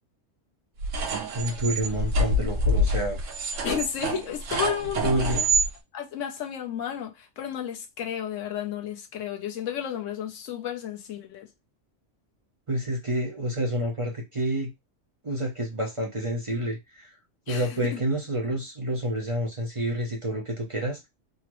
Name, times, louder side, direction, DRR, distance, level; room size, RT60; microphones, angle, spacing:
sound 1, 0.8-5.7, right 1 dB, 80° right, 1.1 m, -26 dB
voice 1, 1.3-3.2 5.0-5.4 12.7-14.7 15.2-17.1 17.5-21.1, right 1 dB, 35° right, 0.6 m, -28 dB
voice 2, 3.6-5.5 5.9-11.5 17.5-18.0, left 9 dB, 85° left, 1.1 m, -32 dB
3.7 x 2.0 x 3.0 m
omnidirectional pair, 1.3 m